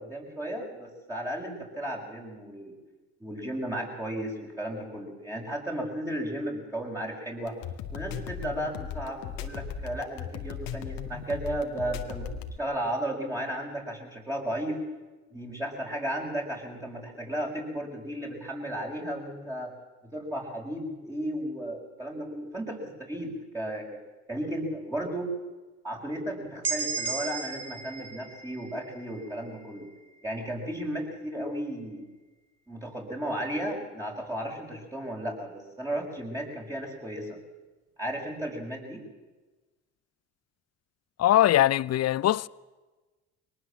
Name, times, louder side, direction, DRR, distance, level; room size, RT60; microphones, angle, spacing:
voice 1, 0.0-2.8 3.2-7.6 7.9-12.3 12.6-14.8 15.3-19.7 20.1-23.8 24.3-25.3 25.8-29.9 30.2-32.0 32.7-37.4 38.0-39.0, right 1 dB, 10° right, 6.5 m, -34 dB
sound 1, 7.5-12.6, left 8 dB, 70° left, 2.1 m, -37 dB
sound 2, 26.6-30.5, right 5 dB, 45° right, 3.8 m, -36 dB
voice 2, 41.2-42.5, left 13 dB, 45° left, 0.7 m, -21 dB
23.0 x 19.5 x 7.6 m
hypercardioid pair, 70°, 36 cm